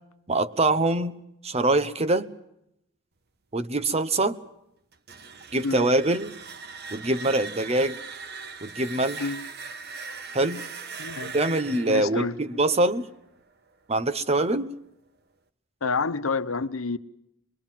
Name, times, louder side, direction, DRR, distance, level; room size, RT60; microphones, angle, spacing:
voice 1, 0.3-1.2 1.4-2.3 3.5-4.4 5.5-6.3 6.9-8.0 8.6-9.3 10.3-10.6 11.3-13.1 13.9-14.7, right 2 dB, 30° right, 1.1 m, -24 dB
sound 1, 4.9-13.7, right 4 dB, 55° right, 1.3 m, -40 dB
voice 2, 11.0-11.3 11.9-12.4 15.8-17.0, left 4 dB, 85° left, 1.0 m, -28 dB
25.5 x 22.0 x 7.5 m
head